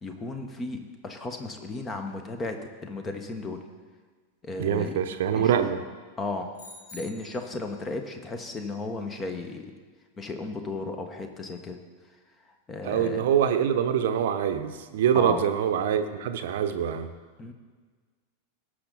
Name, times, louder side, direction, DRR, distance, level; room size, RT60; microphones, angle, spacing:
voice 1, 0.0-3.6 4.4-5.0 5.3-5.6 6.2-6.6 6.9-9.7 10.2-11.8 12.7-13.3 15.1-15.4 17.4-17.5, left 3 dB, 20° left, 6 dB, 1.2 m, -35 dB
voice 2, 4.6-5.8 12.8-17.1, right 8 dB, 55° right, 8 dB, 0.8 m, -25 dB
sound 1, 6.5-7.7, left 1 dB, 60° left, 3.8 m, -47 dB
17.5 x 6.6 x 4.0 m, 1.5 s
figure-of-eight pair, 90°, 0 cm